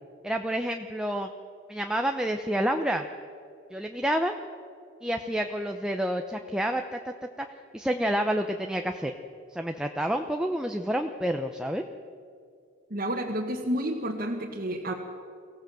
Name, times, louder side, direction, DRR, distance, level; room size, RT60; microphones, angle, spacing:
voice 1, 0.2-1.3 1.7-3.0 3.7-4.3 5.0-7.1 7.4-7.5 7.7-9.1 9.5-11.8, equal, 5° right, 4 dB, 0.7 m, -29 dB
voice 2, 12.9-14.9, right 1 dB, 50° right, -2 dB, 1.6 m, -30 dB
24.0 x 16.0 x 7.7 m, 2.3 s
head